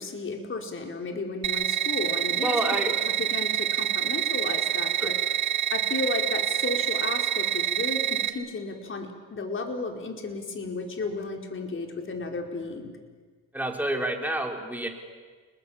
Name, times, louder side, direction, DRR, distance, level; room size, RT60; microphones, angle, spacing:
voice 1, 0.0-2.6 2.8-5.1 5.7-12.9, left 3 dB, 40° left, 3 dB, 4.7 m, -33 dB
sound 1, 1.4-8.3, right 11 dB, 70° right, 1.8 m, -27 dB
voice 2, 2.4-2.9 5.0-5.1 13.5-14.9, right 1 dB, 5° right, 2 dB, 4.5 m, -28 dB
29.0 x 21.0 x 8.8 m, 1.5 s
cardioid pair, 90°, 30 cm